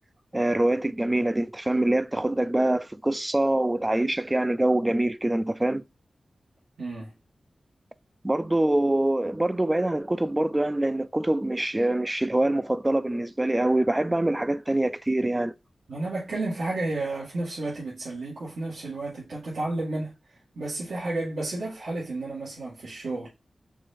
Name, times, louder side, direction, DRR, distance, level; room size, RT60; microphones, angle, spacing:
voice 1, 0.3-5.8 8.2-15.5, right 1 dB, 15° right, 0.3 m, -24 dB
voice 2, 6.8-7.1 15.9-23.3, right 2 dB, 90° right, 1.7 m, -32 dB
4.7 x 2.4 x 4.1 m
wide cardioid pair, 100°, 0 cm